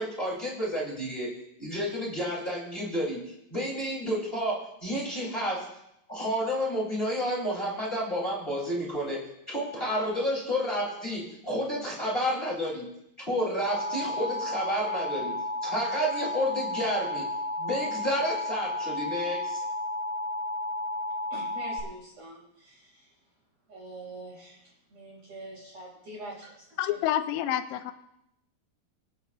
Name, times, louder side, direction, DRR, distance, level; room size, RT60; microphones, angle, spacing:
voice 1, 0.0-5.7 6.1-12.9 13.3-15.3 15.6-17.3 17.6-19.6, equal, 15° left, -5 dB, 3.1 m, -30 dB
Alarm, 13.6-21.8, left 1 dB, 50° left, 1.8 m, -32 dB
voice 2, 21.3-23.2 23.7-27.1, right 2 dB, 40° right, -4 dB, 6.1 m, -45 dB
voice 3, 26.8-27.9, left 11 dB, 90° left, 9 dB, 2.8 m, -28 dB
26.0 x 9.0 x 2.5 m, 0.80 s
omnidirectional pair, 4.9 m